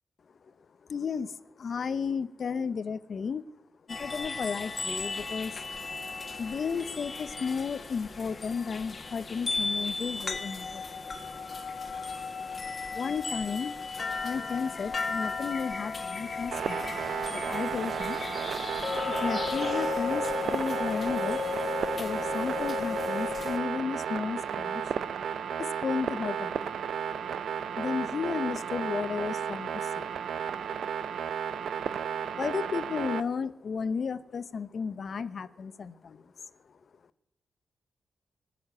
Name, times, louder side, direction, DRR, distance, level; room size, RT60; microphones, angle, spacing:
voice 1, 0.9-3.4 3.9-5.6 6.3-11.1 12.9-13.7 14.2-16.9 17.3-18.2 19.0-21.4 22.0-24.9 25.4-26.8 27.3-27.4 27.8-30.1 32.4-36.3, left 5 dB, 50° left, 14 dB, 0.8 m, -33 dB
sound 1, 3.9-23.6, left 4 dB, 35° left, 1.7 m, -35 dB
sound 2, 16.5-33.2, right 7 dB, 80° right, 0.6 m, -33 dB
20.5 x 7.0 x 9.7 m, 0.83 s
wide cardioid pair, 130°, 0 cm